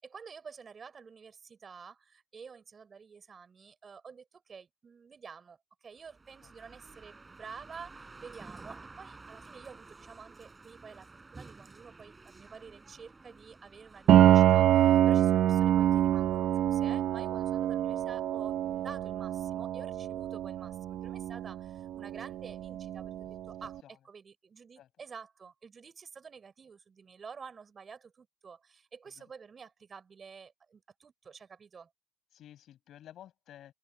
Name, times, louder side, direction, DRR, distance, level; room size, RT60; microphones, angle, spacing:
voice 1, 0.0-23.7 24.0-31.9, right 6 dB, 45° right, 4.7 m, -50 dB
sound 1, 6.0-14.3, right 3 dB, 25° right, 5.9 m, -52 dB
Piano, 14.1-23.7, right 11 dB, 80° right, 0.8 m, -26 dB
voice 2, 32.3-33.7, left 11 dB, 75° left, 6.7 m, -52 dB
open air
cardioid pair, 90°, 0 cm